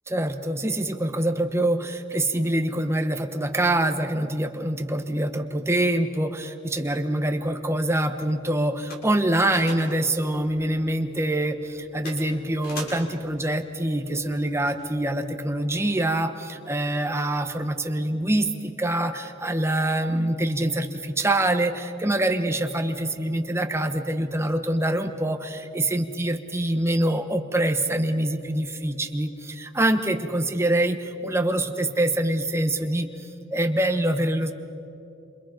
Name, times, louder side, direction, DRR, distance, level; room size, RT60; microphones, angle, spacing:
voice 1, 0.1-34.5, right 1 dB, 15° right, 6 dB, 1.1 m, -25 dB
sound 1, 7.2-15.2, left 1 dB, 45° left, 5.8 m, -44 dB
28.0 x 27.5 x 5.1 m, 2.9 s
head